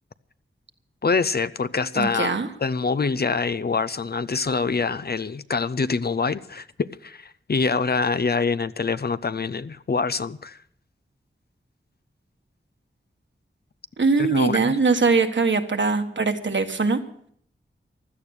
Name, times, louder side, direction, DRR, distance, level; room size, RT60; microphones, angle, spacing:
voice 1, 1.0-2.3 2.6-10.6 14.2-14.8, left 4 dB, 50° left, 0.7 m, -25 dB
voice 2, 1.9-2.5 14.0-17.0, right 4 dB, 65° right, 1.5 m, -21 dB
16.0 x 12.0 x 6.5 m
wide cardioid pair, 55°, 20 cm